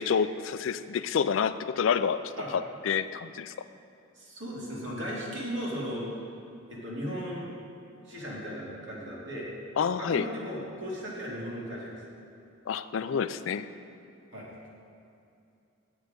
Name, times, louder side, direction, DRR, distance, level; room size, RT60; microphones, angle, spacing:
voice 1, 0.0-2.2 2.5-3.5 9.8-10.3 12.7-13.7, left 7 dB, 70° left, 12 dB, 0.4 m, -28 dB
voice 2, 4.1-6.1 6.7-7.5 8.0-9.5 10.0-12.0 14.3-14.5, equal, 65° right, -5 dB, 2.5 m, -36 dB
9.3 x 8.0 x 5.1 m, 2.6 s
head